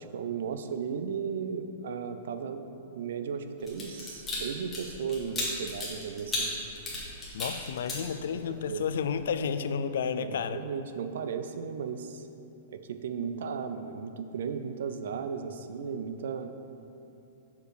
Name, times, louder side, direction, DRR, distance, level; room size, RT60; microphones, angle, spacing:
voice 1, 0.0-2.7 2.9-6.6 8.3-8.8 10.2-12.3 12.7-16.5, right 6 dB, 70° right, 9 dB, 0.5 m, -35 dB
sound 1, 3.6-8.6 9.0-9.3, left 2 dB, 10° left, 1.3 m, -35 dB
voice 2, 7.3-10.6, left 6 dB, 70° left, 11 dB, 0.3 m, -31 dB
6.6 x 5.1 x 4.8 m, 2.8 s
supercardioid pair, 170°, 0 cm